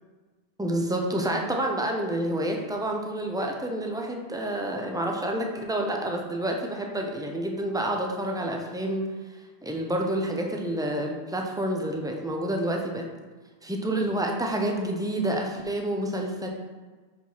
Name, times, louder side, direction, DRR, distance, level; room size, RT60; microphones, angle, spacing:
voice 1, 0.6-9.1 9.6-13.1 13.6-16.5, right 1 dB, 5° right, 1 dB, 0.4 m, -28 dB
4.7 x 4.3 x 5.5 m, 1.3 s
omnidirectional pair, 1.1 m